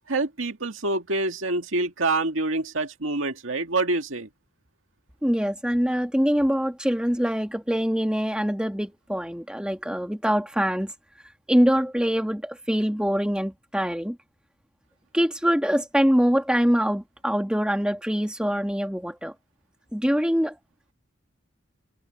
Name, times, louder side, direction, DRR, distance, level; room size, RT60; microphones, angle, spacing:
voice 1, 0.1-4.3, right 2 dB, 75° right, 2.1 m, -26 dB
voice 2, 5.2-10.9 11.5-14.2 15.1-19.3 19.9-20.6, equal, 5° right, 2.0 m, -24 dB
head